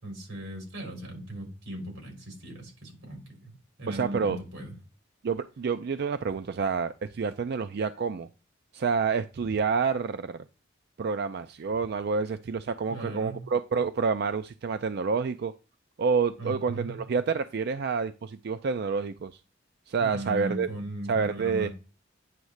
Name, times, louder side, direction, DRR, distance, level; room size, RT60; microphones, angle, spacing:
voice 1, 0.0-3.5 3.8-4.7 12.9-13.5 16.4-17.0 20.0-21.7, right 1 dB, 90° right, 3.6 m, -38 dB
voice 2, 3.9-4.4 5.2-8.3 8.7-10.4 11.0-15.5 16.0-19.3 19.9-20.7 21.1-21.7, right 5 dB, 55° right, 0.4 m, -28 dB
9.2 x 3.1 x 6.4 m
head